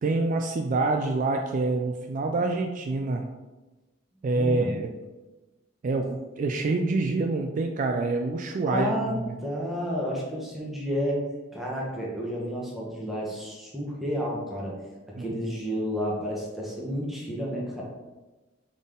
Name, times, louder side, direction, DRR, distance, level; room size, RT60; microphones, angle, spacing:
voice 1, 0.0-3.2 4.2-4.9 5.8-9.4 15.2-15.3, right 3 dB, 45° right, 3 dB, 0.3 m, -26 dB
voice 2, 4.3-4.7 8.7-11.2 11.5-14.8 15.1-17.8, equal, ahead, -4 dB, 1.1 m, -31 dB
4.1 x 3.5 x 3.7 m, 1.1 s
head